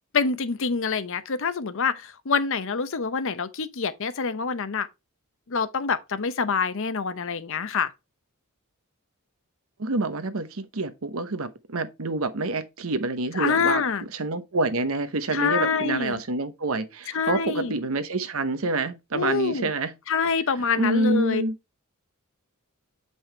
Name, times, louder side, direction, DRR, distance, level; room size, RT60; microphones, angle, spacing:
voice 1, 0.1-4.9 5.5-7.9 13.3-14.1 15.3-16.2 17.1-17.8 19.1-19.7 20.1-21.4, left 5 dB, 65° left, 0.7 m, -26 dB
voice 2, 9.8-13.8 14.1-19.9 20.8-21.5, right 2 dB, 70° right, 0.9 m, -27 dB
7.7 x 5.4 x 3.3 m
head